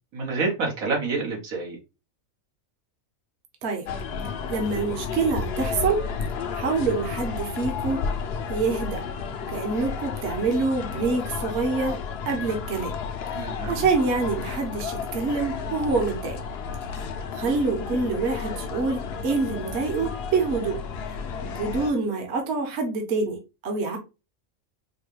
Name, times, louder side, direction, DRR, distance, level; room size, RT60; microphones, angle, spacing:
voice 1, 0.1-1.8 13.3-13.9, right 3 dB, 90° right, 1.7 m, -28 dB
sound 1, 3.9-21.9, left 5 dB, 60° left, 0.7 m, -32 dB
voice 2, 4.5-6.0 6.5-8.0 8.5-9.0 9.5-12.0 12.3-12.9 13.7-16.4 16.9-17.0 17.3-20.8 21.4-24.0, right 4 dB, 55° right, 1.1 m, -26 dB
4.7 x 2.2 x 3.1 m
omnidirectional pair, 1.4 m